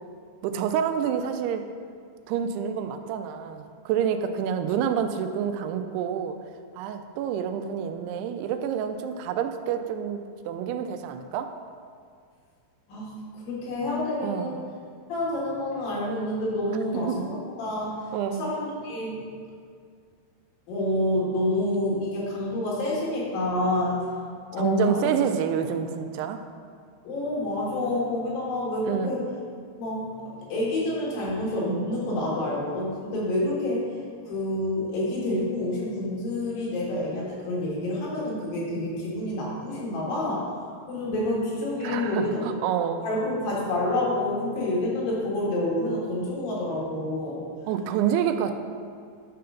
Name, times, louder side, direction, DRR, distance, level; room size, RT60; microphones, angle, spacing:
voice 1, 0.4-1.7 2.3-6.4 6.8-11.5 14.2-14.6 16.9-17.3 18.1-18.5 24.6-26.4 28.9-29.2 41.8-43.0 47.7-48.5, right 8 dB, 90° right, 8 dB, 2.6 m, -28 dB
voice 2, 12.9-14.6 15.1-17.3 17.6-18.1 18.4-19.2 20.7-24.0 24.5-25.1 27.0-29.2 29.8-33.8 34.3-40.5 40.9-42.4 43.0-47.4, left 1 dB, 65° left, -6 dB, 3.5 m, -28 dB
9.4 x 3.8 x 5.6 m, 2.1 s
omnidirectional pair, 4.6 m